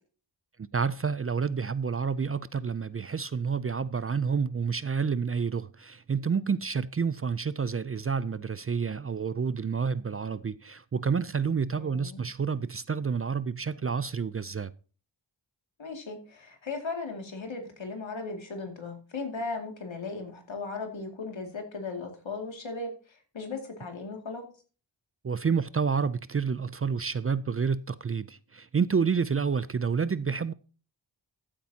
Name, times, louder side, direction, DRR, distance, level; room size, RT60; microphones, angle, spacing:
voice 1, 0.7-14.7 25.2-30.5, right 5 dB, 30° right, 0.4 m, -29 dB
voice 2, 11.7-12.2 15.8-24.4, left 3 dB, 80° left, 2.5 m, -37 dB
14.0 x 8.6 x 2.8 m
wide cardioid pair, 60°, 45 cm